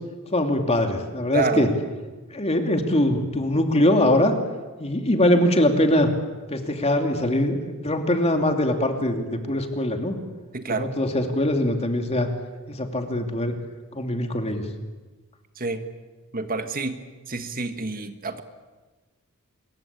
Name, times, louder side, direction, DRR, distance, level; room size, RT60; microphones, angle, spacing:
voice 1, 0.3-1.7 2.3-4.3 4.8-6.1 6.5-10.2 10.8-12.3 12.7-13.5 13.9-14.7, left 1 dB, 30° left, 4 dB, 2.8 m, -22 dB
voice 2, 1.3-1.7 10.5-10.9 15.6-15.8 16.3-17.0 17.3-18.4, right 3 dB, 40° right, 8 dB, 1.7 m, -28 dB
26.0 x 23.0 x 8.7 m, 1.3 s
head